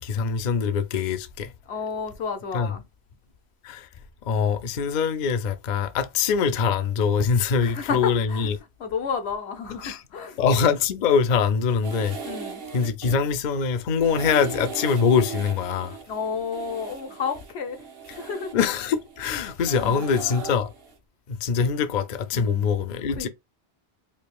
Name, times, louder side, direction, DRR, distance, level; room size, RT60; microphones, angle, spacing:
voice 1, 0.0-1.5 2.5-2.7 3.6-3.9 4.3-8.5 9.8-10.0 10.4-12.2 12.7-16.0 18.5-20.7 21.3-23.3, left 6 dB, 55° left, 0.6 m, -23 dB
voice 2, 1.7-2.8 7.6-8.5 8.8-10.4 12.2-12.6 16.1-18.5 19.8-20.1 22.3-22.7 23.1-23.3, left 6 dB, 80° left, 1.1 m, -31 dB
sound 1, 11.8-13.1 13.5-20.9, right 5 dB, 65° right, 1.1 m, -39 dB
4.7 x 2.7 x 2.2 m
omnidirectional pair, 1.1 m